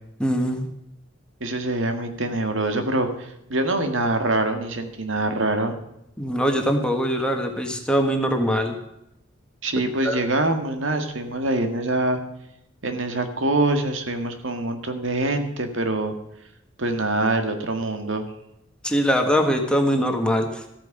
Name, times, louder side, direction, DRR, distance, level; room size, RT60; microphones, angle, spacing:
voice 1, 0.2-0.7 6.2-8.7 10.0-10.2 18.8-20.6, equal, 5° left, 4 dB, 1.5 m, -22 dB
voice 2, 1.4-5.7 9.6-12.2 12.8-16.1 16.8-18.3, right 2 dB, 70° right, 6 dB, 1.8 m, -24 dB
14.0 x 9.2 x 6.6 m, 0.82 s
head